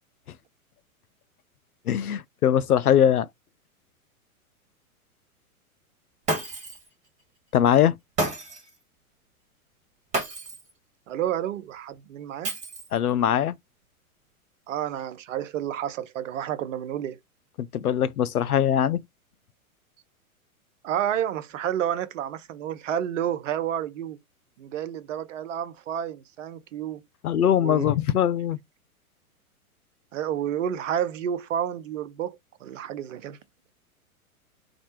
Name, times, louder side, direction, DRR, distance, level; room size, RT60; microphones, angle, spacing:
voice 1, 1.9-3.3 7.5-8.0 12.9-13.6 17.6-19.0 27.2-28.6, left 9 dB, 85° left, 0.5 m, -21 dB
Shatter, 6.3-6.9 8.2-8.7 10.1-10.7 12.4-13.1, right 2 dB, 15° right, 1.8 m, -30 dB
voice 2, 11.1-12.5 14.7-17.2 20.8-24.2 24.6-27.0 27.6-27.9 30.1-33.4, right 10 dB, 60° right, 0.7 m, -30 dB
4.2 x 2.6 x 4.3 m
figure-of-eight pair, 105°, 44 cm